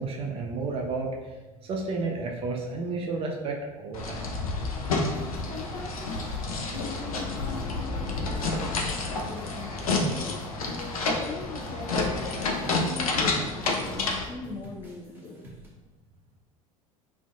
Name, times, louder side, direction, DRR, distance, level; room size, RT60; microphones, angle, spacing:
voice 1, 0.0-1.3 1.6-4.3, right 3 dB, 30° right, 0 dB, 0.4 m, -32 dB
sound 1, 3.9-14.2, left 3 dB, 75° left, 0.4 m, -29 dB
sound 2, 5.0-15.7, right 1 dB, 10° right, 0.8 m, -47 dB
voice 2, 5.5-6.2 6.7-15.4, left 4 dB, 30° left, -1 dB, 0.6 m, -41 dB
2.4 x 2.4 x 2.4 m, 1.2 s
figure-of-eight pair, 70°, 18 cm